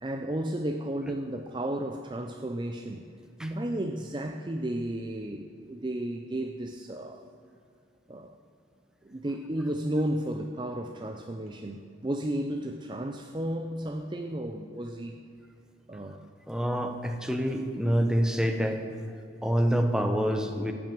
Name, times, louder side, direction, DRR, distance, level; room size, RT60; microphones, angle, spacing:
voice 1, 0.0-3.1 3.4-7.2 8.1-8.4 9.0-15.2 15.9-16.2, right 1 dB, 25° right, 5 dB, 0.5 m, -33 dB
voice 2, 16.5-18.8 19.1-20.7, equal, 5° right, 5 dB, 0.8 m, -27 dB
14.5 x 6.2 x 8.6 m, 2.4 s
head